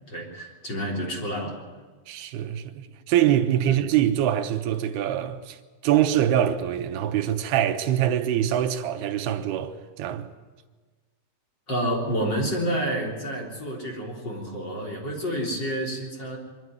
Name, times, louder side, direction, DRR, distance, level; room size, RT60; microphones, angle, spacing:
voice 1, 0.1-1.6 3.6-3.8 11.7-16.4, equal, 25° left, 3.8 m, -29 dB
voice 2, 2.1-5.6 5.8-10.3, right 11 dB, 75° right, 2.8 m, -24 dB
23.0 x 12.5 x 9.4 m
omnidirectional pair, 5.0 m